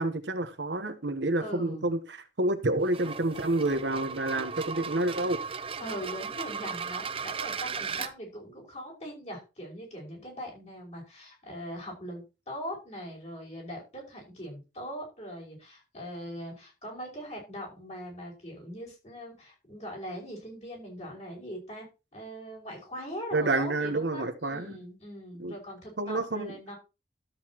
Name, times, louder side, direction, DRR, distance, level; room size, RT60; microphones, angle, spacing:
voice 1, 0.0-5.4 23.3-24.8 25.4-25.5 26.0-26.5, right 2 dB, 70° right, 1.0 m, -29 dB
voice 2, 1.4-1.9 5.8-21.9 22.1-26.7, equal, 40° left, 5.7 m, -41 dB
sound 1, 2.8-8.1, right 6 dB, 30° right, 0.6 m, -36 dB
13.0 x 8.0 x 3.0 m
head